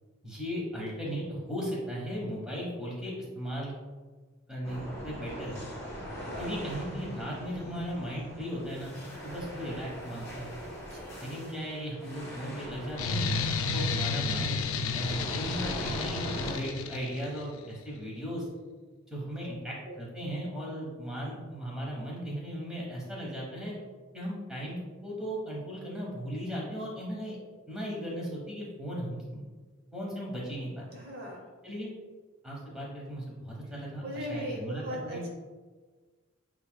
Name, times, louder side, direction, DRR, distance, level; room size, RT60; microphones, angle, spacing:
voice 1, 0.2-3.7 4.5-5.7 6.4-9.0 9.2-10.5 11.2-13.3 13.7-18.5 19.1-23.7 24.1-27.4 27.7-29.4 29.9-30.8 31.6-31.9 32.4-35.2, equal, 5° right, -5 dB, 1.1 m, -37 dB
sound 1, 4.6-16.5, equal, 15° left, 1.3 m, -41 dB
voice 2, 6.1-6.6 10.9-11.2 19.8-20.0 30.9-31.5 34.0-35.3, equal, 50° right, -1 dB, 0.8 m, -38 dB
sound 2, 13.0-17.4, left 4 dB, 85° left, 0.4 m, -32 dB
8.0 x 3.0 x 2.2 m, 1.4 s
head